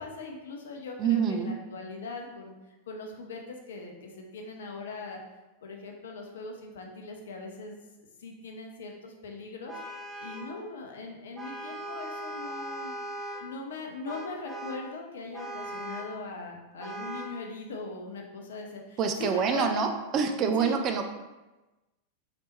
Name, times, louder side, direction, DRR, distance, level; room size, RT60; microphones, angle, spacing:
voice 1, 0.0-2.5 2.9-5.2 5.6-7.8 8.2-9.8 10.2-12.9 13.4-19.9 20.6-20.8, left 3 dB, 60° left, 2 dB, 0.6 m, -40 dB
voice 2, 1.0-1.5 19.0-21.0, right 6 dB, 35° right, 5 dB, 0.4 m, -26 dB
Vehicle horn car horn honking, 9.7-10.6 11.4-13.5 14.1-14.9 15.3-16.2 16.8-17.4, right 1 dB, 5° right, 0.7 m, -39 dB
4.0 x 3.4 x 3.0 m, 1.1 s
figure-of-eight pair, 90°, 0 cm